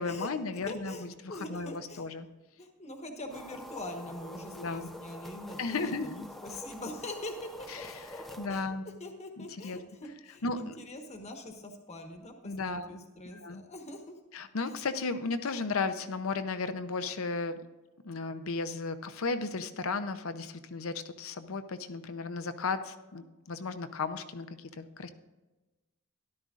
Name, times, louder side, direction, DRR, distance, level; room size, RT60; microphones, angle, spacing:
voice 1, 0.0-2.3 4.6-4.9 5.6-6.2 7.7-8.1 8.4-8.8 9.4-9.8 10.4-10.8 12.4-13.0 13.2-13.6 14.3-17.6 18.0-25.1, left 4 dB, 75° left, 10 dB, 0.7 m, -35 dB
voice 2, 0.7-2.0 2.6-7.7 8.3-8.6 9.0-14.2, left 1 dB, 30° left, 4 dB, 1.2 m, -43 dB
sound 1, 3.3-8.5, equal, ahead, 0.6 m, -46 dB
13.0 x 11.5 x 2.5 m, 1.1 s
head